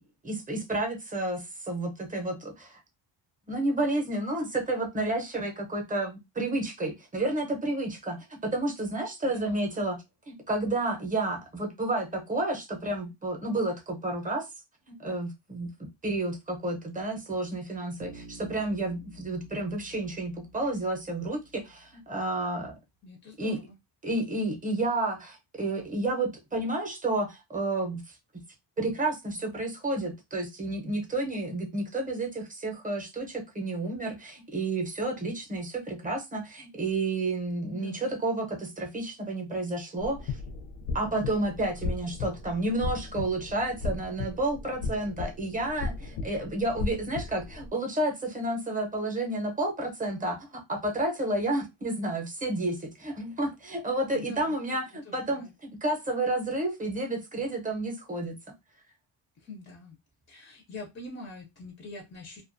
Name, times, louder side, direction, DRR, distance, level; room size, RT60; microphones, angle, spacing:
voice 1, 0.2-2.8 3.5-10.0 10.3-14.5 14.9-15.7 16.0-22.7 23.4-23.6 24.0-28.2 28.8-40.4 40.9-58.3, right 2 dB, 20° right, 2 dB, 0.6 m, -31 dB
voice 2, 9.2-9.7 23.0-23.8 37.7-38.1 54.1-54.6 55.1-55.5 59.4-60.0 60.3-62.4, left 3 dB, 25° left, 2 dB, 0.4 m, -44 dB
Bass guitar, 18.0-22.0, right 2 dB, 80° right, 0.6 m, -50 dB
sound 1, 40.0-47.7, left 4 dB, 80° left, 0.6 m, -36 dB
2.3 x 2.2 x 2.5 m, 0.22 s
cardioid pair, 135°, 46 cm